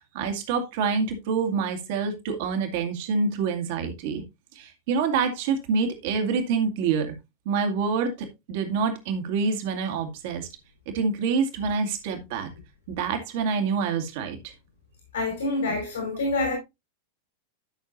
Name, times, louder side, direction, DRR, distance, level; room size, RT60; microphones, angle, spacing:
voice 1, 0.1-4.2 4.6-7.1 7.5-10.5 10.9-12.5 12.9-14.5, right 5 dB, 50° right, 2.3 m, -26 dB
voice 2, 15.1-16.5, left 2 dB, 70° left, 4.5 m, -26 dB
12.5 x 6.5 x 2.6 m
figure-of-eight pair, 90°, 0 cm